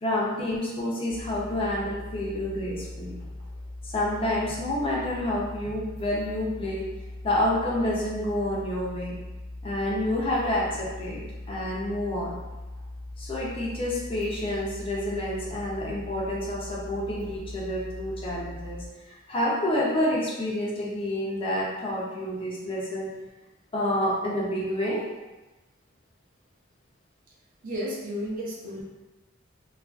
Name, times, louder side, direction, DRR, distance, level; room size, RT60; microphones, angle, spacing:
voice 1, 0.0-3.2 3.9-6.9 7.2-9.2 9.6-11.2 11.5-12.4 13.2-23.1 23.7-25.1, left 1 dB, 30° left, -5 dB, 0.5 m, -28 dB
sound 1, 1.1-18.9, left 1 dB, 80° right, 0.9 m, -40 dB
voice 2, 27.6-28.8, equal, 45° right, -5 dB, 0.6 m, -32 dB
2.4 x 2.3 x 2.3 m, 1.1 s
head